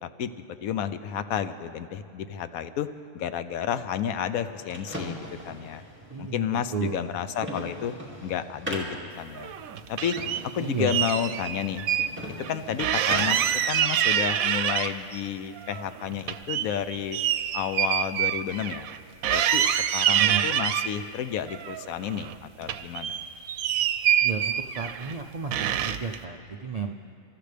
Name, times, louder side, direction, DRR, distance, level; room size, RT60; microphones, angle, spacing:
voice 1, 0.0-2.9 3.1-5.2 5.5-5.8 6.2-8.0 8.2-8.9 9.2-9.5 9.9-10.2 10.5-11.9 12.5-17.2 17.5-18.9 19.3-23.2, left 8 dB, 85° left, 11 dB, 1.1 m, -31 dB
sound 1, 4.3-13.5, equal, 10° right, 2.4 m, -40 dB
voice 2, 6.1-6.4 6.7-7.1 10.6-11.0 20.2-20.4 24.2-26.9, right 5 dB, 65° right, 3 dB, 0.4 m, -32 dB
sound 2, 9.4-10.4 10.9-12.1 12.4-12.5 12.8-15.2 15.6-19.0 19.2-20.9 21.5-22.4 22.6-25.1 25.5-26.2, right 10 dB, 90° right, 1.1 m, -26 dB
26.5 x 13.5 x 3.4 m, 2.5 s
omnidirectional pair, 1.4 m